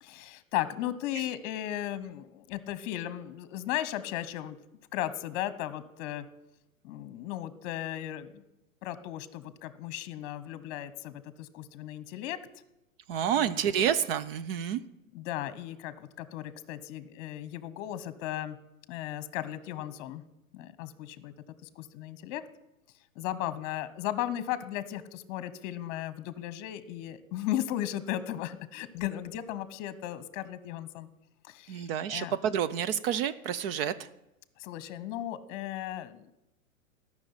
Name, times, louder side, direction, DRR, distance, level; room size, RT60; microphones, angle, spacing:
voice 1, 0.0-4.6 4.9-6.2 6.8-8.4 8.8-12.4 13.3-13.6 15.1-18.6 18.9-20.2 20.5-21.3 21.6-22.4 23.2-31.1 31.5-32.4 34.6-36.3, left 12 dB, 40° left, 15 dB, 1.0 m, -36 dB
voice 2, 13.1-14.8 31.7-33.9, right 9 dB, 45° right, 14 dB, 0.6 m, -29 dB
12.5 x 6.2 x 9.6 m, 0.90 s
hypercardioid pair, 125°, 42 cm